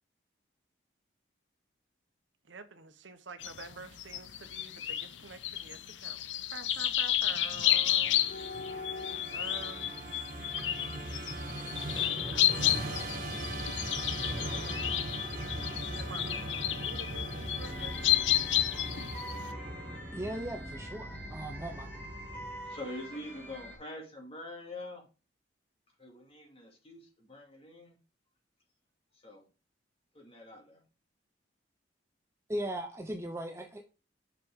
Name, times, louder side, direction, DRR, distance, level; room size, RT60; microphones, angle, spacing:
voice 1, 2.4-8.2 9.3-9.9 12.3-14.5 15.9-16.5 16.8-18.0, right 4 dB, 85° right, 1.0 m, -48 dB
sound 1, 3.4-19.5, left 12 dB, 75° left, 0.6 m, -31 dB
Musical instrument, 7.5-22.8, right 1 dB, 55° right, 2.0 m, -40 dB
sound 2, 17.6-23.8, equal, 10° left, 2.2 m, -45 dB
voice 2, 20.1-21.9 32.5-33.8, right 1 dB, 15° right, 0.7 m, -38 dB
voice 3, 22.7-25.0 26.0-28.0 29.2-29.4 30.1-30.8, left 1 dB, 30° left, 2.3 m, -45 dB
6.3 x 5.9 x 3.6 m
head